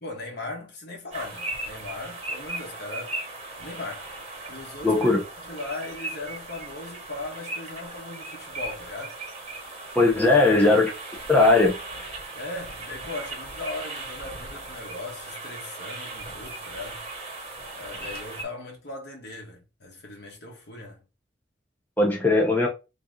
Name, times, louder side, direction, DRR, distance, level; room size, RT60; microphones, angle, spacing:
voice 1, 0.0-3.2 3.6-4.1 4.5-9.2 10.1-10.4 12.3-17.0 17.7-21.0, left 2 dB, 60° left, 1.3 m, -38 dB
sound 1, 1.1-18.4, right 2 dB, 35° right, 1.3 m, -38 dB
voice 2, 4.8-5.2 9.9-10.9 11.3-11.8 22.0-22.7, left 2 dB, 10° left, 0.7 m, -18 dB
3.8 x 2.9 x 3.6 m
head